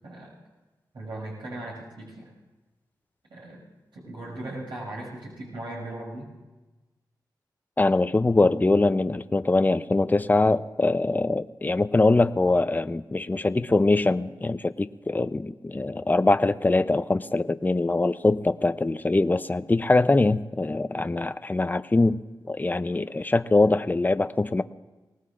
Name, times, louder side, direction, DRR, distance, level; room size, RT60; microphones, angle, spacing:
voice 1, 0.0-0.3 0.9-2.3 3.3-3.6 3.9-6.3, right 1 dB, 75° right, -4 dB, 6.2 m, -38 dB
voice 2, 7.8-22.2 22.5-24.6, left 2 dB, 20° left, 12 dB, 0.5 m, -23 dB
24.0 x 18.5 x 2.5 m, 1.2 s
cardioid pair, 60°, 8 cm